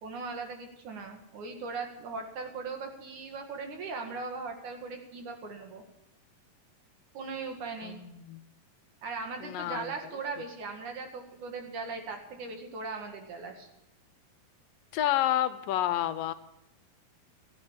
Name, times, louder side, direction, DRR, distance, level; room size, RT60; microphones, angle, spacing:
voice 1, 0.0-5.8 7.1-8.0 9.0-13.7, right 4 dB, 60° right, 3 dB, 3.3 m, -39 dB
voice 2, 7.8-8.5 9.4-9.9 14.9-16.3, left 12 dB, 80° left, 12 dB, 2.4 m, -29 dB
14.0 x 10.5 x 7.4 m, 0.84 s
omnidirectional pair, 4.1 m